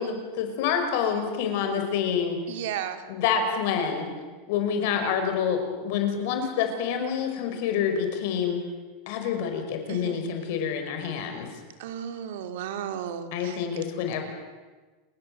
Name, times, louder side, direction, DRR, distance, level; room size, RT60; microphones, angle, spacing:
voice 1, 0.0-2.4 3.1-4.1 4.5-8.6 9.1-11.5 13.3-14.2, left 7 dB, 55° left, 5 dB, 5.4 m, -27 dB
voice 2, 2.5-3.0 9.9-10.2 11.8-13.6, right 9 dB, 70° right, 7 dB, 2.8 m, -34 dB
30.0 x 20.5 x 7.8 m, 1.3 s
supercardioid pair, 170°, 0 cm